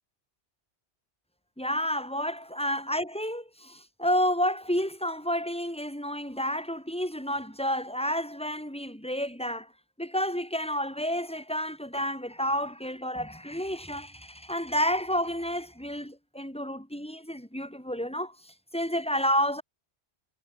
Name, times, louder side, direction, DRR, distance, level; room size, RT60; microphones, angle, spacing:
voice 1, 1.6-9.7 10.0-19.6, equal, 5° left, 7.1 m, -30 dB
omnidirectional pair, 1.2 m